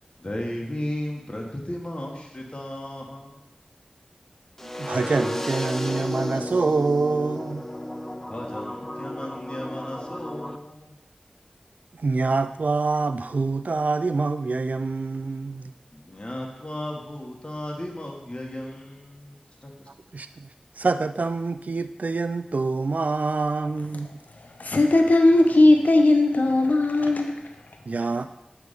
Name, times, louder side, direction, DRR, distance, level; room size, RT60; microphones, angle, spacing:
voice 1, 0.2-3.4 8.3-10.9 15.9-19.9, left 1 dB, 35° left, -1 dB, 1.4 m, -35 dB
sound 1, 4.6-10.6, left 1 dB, 15° left, 0.5 m, -32 dB
voice 2, 4.6-7.7 11.9-15.7 20.1-20.5 20.8-24.1 27.0-27.1 27.9-28.3, right 3 dB, 70° right, 10 dB, 0.3 m, -26 dB
voice 3, 24.0-27.9, left 2 dB, 80° left, 4 dB, 0.7 m, -19 dB
8.0 x 3.4 x 5.1 m, 0.89 s
wide cardioid pair, 45°, 3 cm